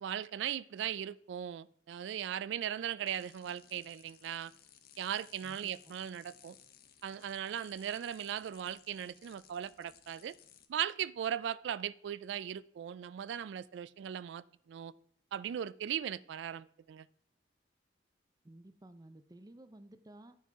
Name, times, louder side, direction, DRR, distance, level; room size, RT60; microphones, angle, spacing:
voice 1, 0.0-4.5 5.0-6.6 7.0-10.3 10.7-14.9 15.3-17.1, right 9 dB, 85° right, 0.3 m, -38 dB
sound 1, 3.1-10.7, left 9 dB, 55° left, 0.8 m, -60 dB
voice 2, 5.4-5.9 18.4-20.4, right 1 dB, 20° right, 0.6 m, -55 dB
9.8 x 5.5 x 4.6 m
head